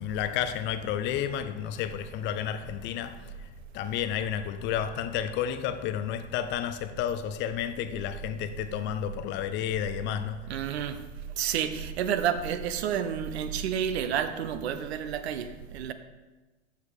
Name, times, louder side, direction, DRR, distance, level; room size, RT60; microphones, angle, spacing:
voice 1, 0.0-3.5 3.7-10.4, left 9 dB, 30° left, 0.5 m, -31 dB
voice 2, 10.5-11.0 11.4-15.9, right 9 dB, 60° right, 0.7 m, -30 dB
13.0 x 4.8 x 3.5 m
figure-of-eight pair, 90°, 36 cm